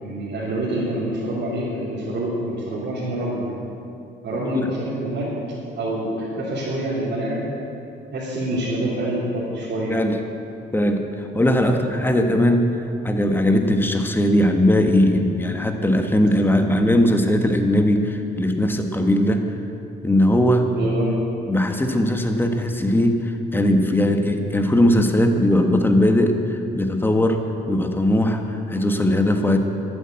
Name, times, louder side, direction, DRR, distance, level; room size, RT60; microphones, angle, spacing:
voice 1, 0.0-3.5 4.2-5.3 5.8-7.5 8.1-10.0 11.7-11.8 20.7-21.2, right 1 dB, 60° right, -9 dB, 3.3 m, -26 dB
voice 2, 10.7-12.7 13.0-19.5 20.0-20.7 21.5-27.4 27.7-29.6, left 1 dB, 10° left, 5 dB, 1.3 m, -19 dB
12.0 x 8.7 x 8.6 m, 2.7 s
cardioid pair, 90°, 20 cm